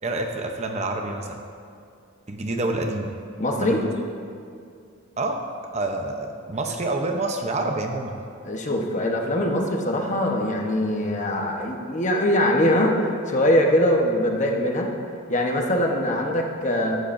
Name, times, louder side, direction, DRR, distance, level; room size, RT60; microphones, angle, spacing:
voice 1, 0.0-1.4 2.3-3.1 3.5-3.9 5.2-5.4 5.7-8.2, right 2 dB, 35° right, 3 dB, 0.8 m, -27 dB
voice 2, 3.4-3.8 8.4-12.9 13.3-14.9 15.3-17.0, left 1 dB, 35° left, 1 dB, 1.1 m, -22 dB
14.5 x 11.5 x 2.6 m, 2.4 s
head